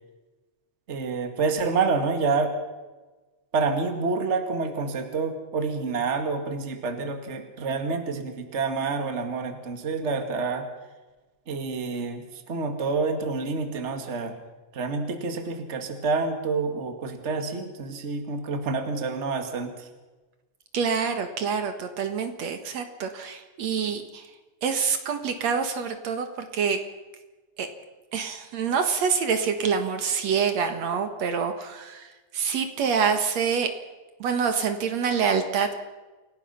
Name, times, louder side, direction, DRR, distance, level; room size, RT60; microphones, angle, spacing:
voice 1, 0.9-2.5 3.5-10.7 11.5-14.3 14.7-19.9, right 4 dB, 25° right, 6 dB, 2.0 m, -28 dB
voice 2, 20.7-24.3 24.6-26.8 27.6-27.7 28.1-33.7 34.2-35.7, right 6 dB, 65° right, 7 dB, 2.6 m, -26 dB
28.0 x 18.0 x 5.8 m, 1.2 s
omnidirectional pair, 3.4 m